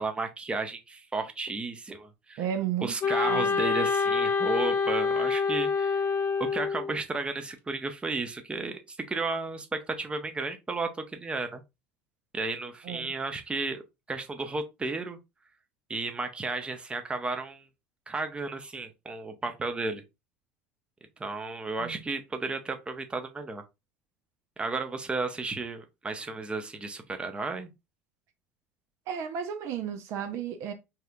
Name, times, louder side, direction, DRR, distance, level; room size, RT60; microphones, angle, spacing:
voice 1, 0.0-2.4 2.8-6.0 6.4-11.6 12.3-13.8 14.1-15.2 15.9-17.6 18.1-20.0 21.2-23.6 24.6-27.7, right 3 dB, 15° right, 0.7 m, -33 dB
voice 2, 2.4-2.9 3.2-3.6 12.8-13.1 21.8-22.0 29.1-30.7, right 9 dB, 55° right, 0.5 m, -33 dB
Wind instrument woodwind instrument, 3.0-7.0, left 5 dB, 40° left, 0.7 m, -26 dB
4.2 x 2.4 x 2.2 m
hypercardioid pair, 75°, 6 cm